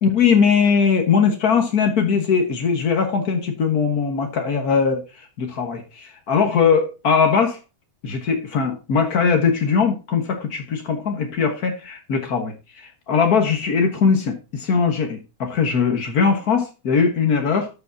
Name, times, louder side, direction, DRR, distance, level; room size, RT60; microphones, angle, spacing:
voice 1, 0.0-7.6 8.0-17.7, left 6 dB, 80° left, 1.9 m, -20 dB
12.5 x 7.0 x 2.7 m
omnidirectional pair, 1.6 m